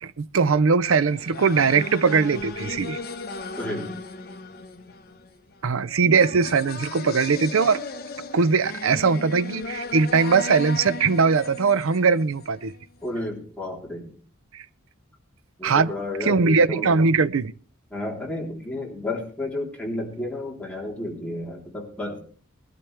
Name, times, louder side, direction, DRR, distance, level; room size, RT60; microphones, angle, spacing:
voice 1, 0.0-3.0 5.6-7.8 8.3-12.8 14.5-14.6 15.6-15.9 16.2-17.5, right 5 dB, 70° right, 0.6 m, -20 dB
sound 1, 0.9-12.7, left 3 dB, 45° left, 1.2 m, -36 dB
voice 2, 3.6-3.9 13.0-14.1 15.6-16.9 17.9-22.2, left 1 dB, 5° left, 3.6 m, -32 dB
19.5 x 12.0 x 3.4 m
head